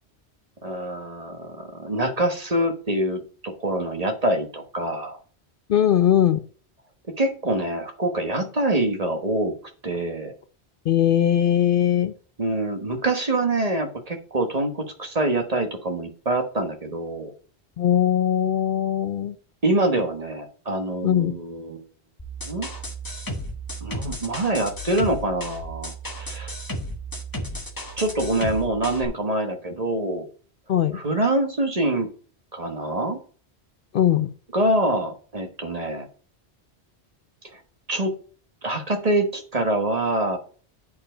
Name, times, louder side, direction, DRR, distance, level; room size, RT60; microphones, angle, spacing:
voice 1, 0.6-5.2 7.2-9.5 9.8-10.3 12.4-17.3 19.6-21.8 22.4-22.7 23.8-26.5 28.0-30.3 30.9-32.1 32.5-33.2 34.5-36.1 37.5-37.6 37.9-38.1 38.6-40.4, right 1 dB, 35° right, 5 dB, 1.2 m, -25 dB
voice 2, 5.7-6.4 10.9-12.1 17.8-19.4 21.0-21.3 30.7-31.0 33.9-34.3, left 10 dB, 60° left, 11 dB, 0.7 m, -20 dB
sound 1, 22.2-29.0, equal, 20° left, 1.3 m, -34 dB
8.5 x 4.6 x 4.9 m, 0.42 s
omnidirectional pair, 1.1 m